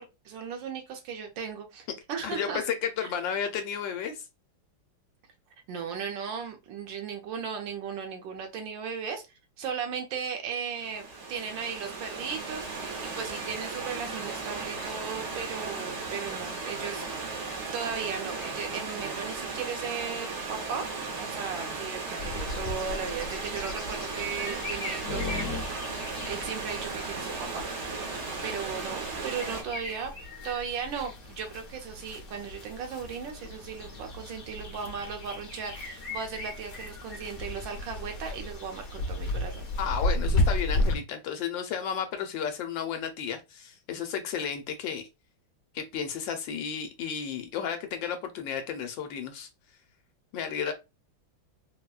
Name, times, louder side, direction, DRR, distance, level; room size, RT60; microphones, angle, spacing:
voice 1, 0.0-2.6 5.7-9.2 9.6-17.5 17.7-20.9 21.2-27.9 28.4-30.1 30.4-39.6, right 6 dB, 75° right, 1.4 m, -36 dB
voice 2, 2.2-4.3 39.8-45.1 45.7-49.5 50.3-50.7, left 7 dB, 75° left, 1.2 m, -33 dB
Stream / Liquid, 10.7-29.6, right 3 dB, 55° right, 0.8 m, -36 dB
sound 1, 22.2-40.9, left 2 dB, 50° left, 1.0 m, -34 dB
4.1 x 2.1 x 2.3 m
omnidirectional pair, 2.2 m